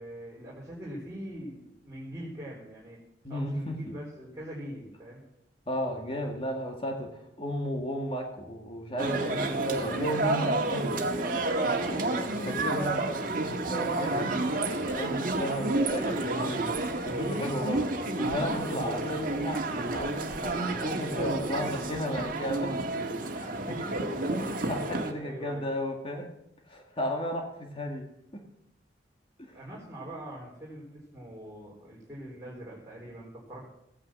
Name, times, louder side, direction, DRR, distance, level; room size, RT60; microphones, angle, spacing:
voice 1, 0.0-3.0 3.3-5.2 12.2-13.4 13.9-14.7 25.1-25.7 29.5-33.7, right 1 dB, 20° right, -6 dB, 3.8 m, -43 dB
voice 2, 3.2-3.8 5.7-11.0 11.3-13.1 13.7-14.4 15.0-23.0 23.3-24.0 24.3-26.3 26.7-28.0 28.3-28.4 29.4-29.6, equal, 30° left, 2 dB, 2.0 m, -34 dB
sound 1, 9.0-25.1, right 2 dB, 50° right, 1.8 m, -30 dB
16.0 x 9.6 x 7.4 m, 0.80 s
head